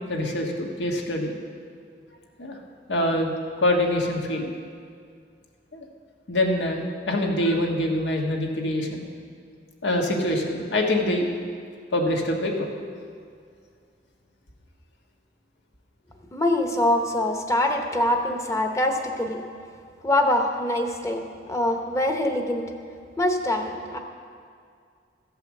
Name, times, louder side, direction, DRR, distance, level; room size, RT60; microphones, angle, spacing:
voice 1, 0.1-1.3 2.4-2.6 2.9-3.3 3.6-4.5 5.7-5.8 6.3-9.0 9.8-11.3 11.9-12.7 18.9-19.0, left 1 dB, 85° left, 1 dB, 1.5 m, -25 dB
voice 2, 16.3-19.4 20.0-21.2 21.5-22.6 23.2-24.0, left 1 dB, 15° left, 4 dB, 0.9 m, -24 dB
14.5 x 5.7 x 7.2 m, 2.2 s
head